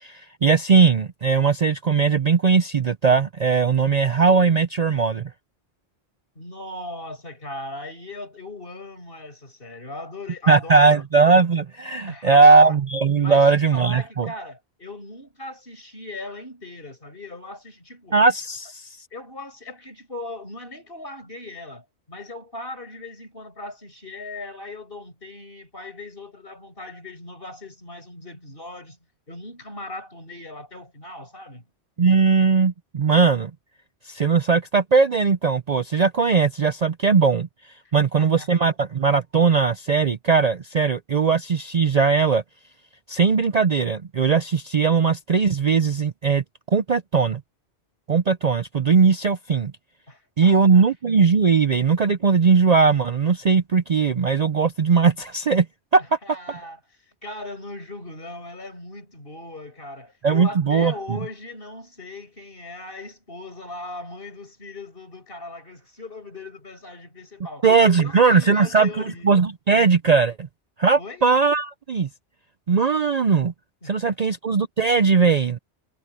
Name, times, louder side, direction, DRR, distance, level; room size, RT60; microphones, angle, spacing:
voice 1, 0.0-5.3 10.5-14.3 18.1-18.9 32.0-33.5 34.1-37.5 37.9-42.4 43.1-46.4 46.7-47.4 48.1-49.7 50.4-55.7 55.9-56.2 60.2-60.9 67.6-68.9 69.2-70.5 70.8-72.1 72.7-73.5 73.8-75.6, right 5 dB, 45° right, 0.6 m, -19 dB
voice 2, 6.3-11.0 12.1-12.8 13.2-18.2 19.1-29.0 29.3-31.6 37.8-38.7 50.1-50.8 56.0-56.8 57.2-67.7 67.9-69.3 71.0-71.3 73.8-74.2, left 2 dB, 55° left, 6.8 m, -38 dB
omnidirectional pair, 1.1 m